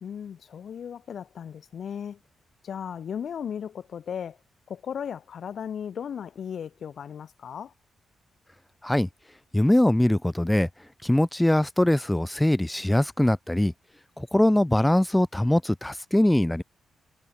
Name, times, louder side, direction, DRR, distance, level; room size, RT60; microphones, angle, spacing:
voice 1, 0.0-2.2 2.6-4.4 4.7-7.7, left 8 dB, 65° left, 1.9 m, -36 dB
voice 2, 9.5-10.7 11.0-13.7 14.2-16.6, left 1 dB, 10° left, 2.1 m, -22 dB
cardioid pair, 80°, 0 cm